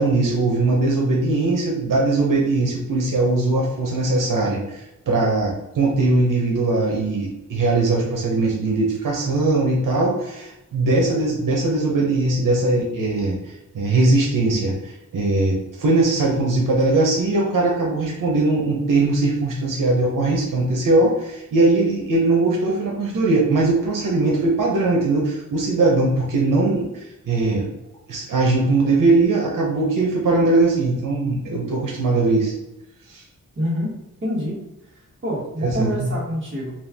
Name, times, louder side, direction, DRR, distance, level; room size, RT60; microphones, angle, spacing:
voice 1, 0.0-27.7 28.1-32.5 33.1-33.2 35.6-36.1, right 2 dB, 85° right, -2 dB, 0.9 m, -20 dB
voice 2, 33.6-33.9 34.2-34.5 34.9-35.0 35.2-36.7, equal, 40° right, -5 dB, 1.4 m, -26 dB
4.3 x 2.4 x 3.5 m, 0.92 s
wide cardioid pair, 155°, 32 cm